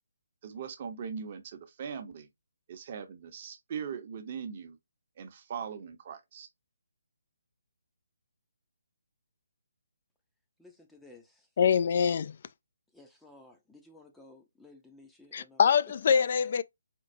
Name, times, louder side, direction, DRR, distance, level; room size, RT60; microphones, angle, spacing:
voice 1, 0.4-2.3 2.7-4.8 5.2-6.5, right 7 dB, 40° right, 0.8 m, -40 dB
voice 2, 10.6-11.5 12.9-15.6, left 2 dB, 5° left, 0.6 m, -55 dB
voice 3, 11.6-12.4 15.3-16.6, left 7 dB, 50° left, 0.3 m, -24 dB
4.4 x 2.3 x 2.6 m
figure-of-eight pair, 150°, 0 cm